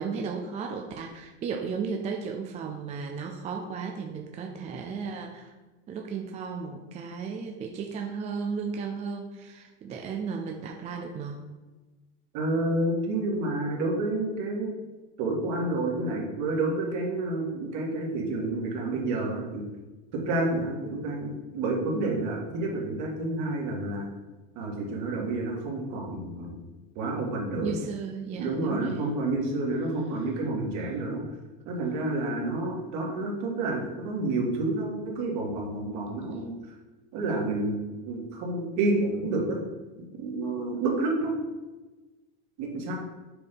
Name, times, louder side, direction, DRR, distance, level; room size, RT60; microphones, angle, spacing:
voice 1, 0.0-5.5 5.9-11.4 27.6-29.0, right 5 dB, 20° right, 3 dB, 0.4 m, -34 dB
voice 2, 12.3-14.7 15.2-19.6 20.1-24.1 24.6-26.6 27.0-27.8 28.4-31.2 31.6-36.5 37.1-39.6 40.2-41.3 42.6-43.0, right 2 dB, 55° right, -1 dB, 1.8 m, -29 dB
6.9 x 2.7 x 5.2 m, 1.2 s
supercardioid pair, 125°, 35 cm